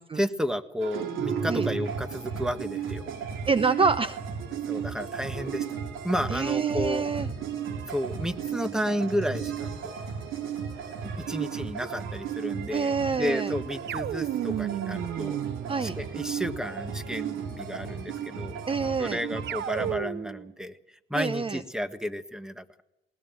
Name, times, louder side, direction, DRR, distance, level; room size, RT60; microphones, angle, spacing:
voice 1, 0.1-3.0 4.7-5.6 6.0-7.0 7.9-9.9 11.0-15.4 15.8-18.5 19.0-20.8 21.1-22.8, equal, 5° right, 10 dB, 1.6 m, -32 dB
sound 1, 0.8-20.0, right 7 dB, 85° right, 3.2 m, -34 dB
voice 2, 3.5-4.2 6.3-7.3 12.7-13.5 15.7-16.0 18.7-19.2 21.1-21.6, right 4 dB, 25° right, 13 dB, 0.8 m, -27 dB
sound 2, 13.9-16.4 19.5-20.5, right 10 dB, 60° right, 0.7 m, -33 dB
20.0 x 20.0 x 7.6 m, 0.93 s
cardioid pair, 90°, 20 cm